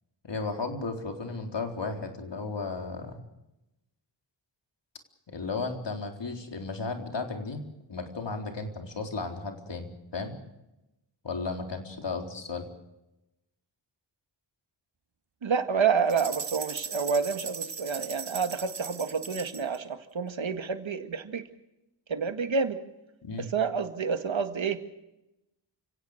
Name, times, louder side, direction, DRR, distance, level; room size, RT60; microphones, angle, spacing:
voice 1, 0.2-3.2 5.3-7.6 7.9-10.3 11.2-12.7 23.2-23.5, left 3 dB, 65° left, 4 dB, 4.1 m, -34 dB
voice 2, 15.4-21.4 22.1-22.8 23.4-24.8, right 5 dB, 75° right, 8 dB, 2.0 m, -29 dB
sound 1, 16.1-19.8, right 6 dB, 60° right, 1.8 m, -38 dB
29.5 x 17.5 x 6.6 m, 0.94 s
wide cardioid pair, 75°, 46 cm